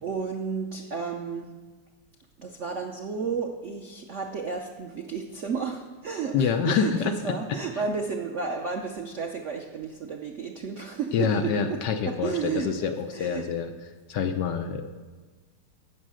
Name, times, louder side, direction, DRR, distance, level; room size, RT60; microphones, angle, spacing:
voice 1, 0.0-1.5 2.4-11.8 12.1-13.4, right 5 dB, 85° right, 3 dB, 0.6 m, -32 dB
voice 2, 6.3-7.3 11.1-13.7 14.1-14.8, left 6 dB, 65° left, 6 dB, 1.2 m, -26 dB
16.5 x 6.4 x 6.3 m, 1.4 s
omnidirectional pair, 2.4 m